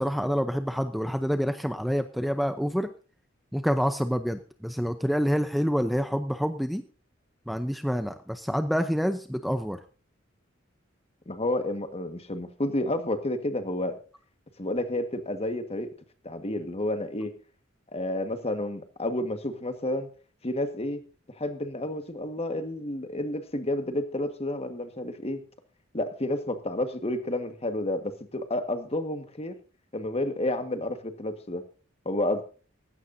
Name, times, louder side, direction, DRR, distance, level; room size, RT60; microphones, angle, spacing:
voice 1, 0.0-2.9 3.5-6.8 7.5-9.8, equal, ahead, 8 dB, 0.7 m, -27 dB
voice 2, 11.2-14.0 14.6-15.9 16.2-17.3 17.9-20.1 20.4-21.0 21.3-25.4 25.9-29.6 29.9-31.6 32.0-32.4, left 1 dB, 30° left, 8 dB, 1.6 m, -30 dB
17.5 x 16.0 x 2.7 m, 0.37 s
head